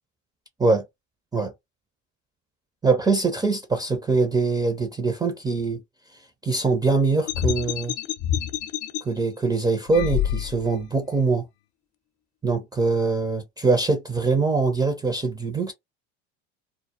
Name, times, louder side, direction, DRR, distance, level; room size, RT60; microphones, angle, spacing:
voice 1, 2.8-5.8 6.4-7.9 9.0-11.4 12.4-15.7, right 4 dB, 10° right, 0.4 m, -23 dB
sound 1, 7.3-9.0 9.9-10.8, left 11 dB, 55° left, 0.6 m, -27 dB
2.2 x 2.0 x 2.7 m
hypercardioid pair, 90°, 37 cm